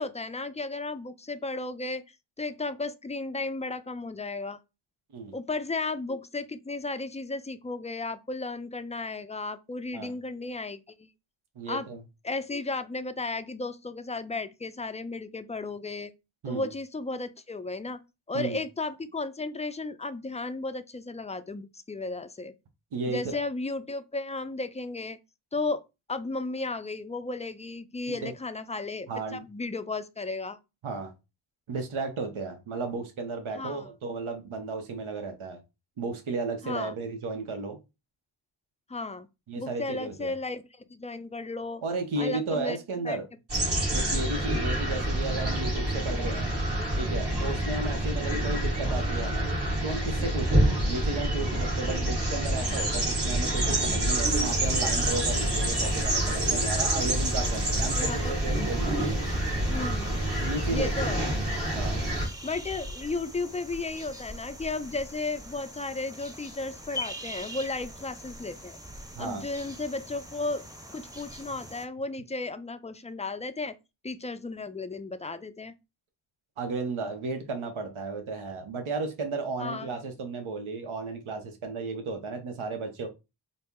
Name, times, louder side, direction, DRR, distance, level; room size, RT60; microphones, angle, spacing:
voice 1, 0.0-4.6 5.3-11.1 11.7-11.9 12.2-16.1 16.5-18.0 18.3-22.5 23.1-25.2 25.5-25.8 26.1-30.6 33.5-33.9 36.6-36.9 38.9-39.3 39.6-41.8 42.2-42.8 43.0-43.2 43.7-43.8 58.0-58.7 59.7-60.1 60.7-61.3 62.4-68.8 69.2-70.6 70.9-73.7 74.0-75.7 79.6-80.0, left 3 dB, 15° left, 0.3 m, -34 dB
voice 2, 11.6-12.0 16.4-16.7 18.3-18.6 22.9-23.4 28.1-28.3 29.1-29.4 30.8-31.1 31.7-35.6 36.0-37.8 39.5-40.3 41.8-43.2 43.9-46.5 47.0-49.5 49.8-58.9 60.4-61.1 61.7-62.0 69.2-69.4 76.6-83.1, right 3 dB, 80° right, 0.8 m, -34 dB
sound 1, 43.5-62.3, right 1 dB, 55° right, 2.1 m, -27 dB
sound 2, 54.2-71.9, equal, 10° right, 0.7 m, -43 dB
4.1 x 2.0 x 3.5 m
cardioid pair, 50°, 48 cm